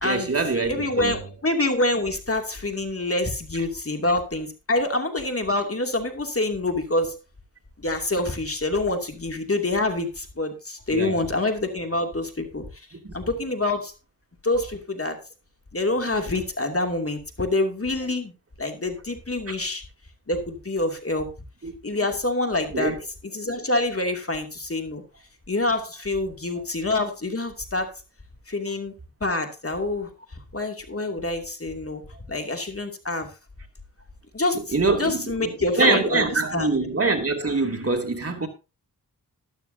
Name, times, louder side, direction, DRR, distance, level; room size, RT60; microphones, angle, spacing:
voice 1, 0.0-1.2 10.9-11.3 13.0-13.1 19.5-19.6 21.6-22.0 22.7-23.0 26.6-26.7 34.5-38.5, right 3 dB, 40° right, 2.6 m, -25 dB
voice 2, 0.7-7.2 7.8-12.6 13.1-13.9 14.4-15.2 15.7-18.3 18.6-19.8 20.3-21.3 21.8-22.9 23.3-25.0 25.5-27.9 28.5-28.9 29.2-30.1 30.5-32.0 32.3-33.3 34.3-34.6 35.0-36.3 36.5-36.8, left 2 dB, 40° left, 2.6 m, -26 dB
13.5 x 12.5 x 2.7 m
cardioid pair, 45°, 37 cm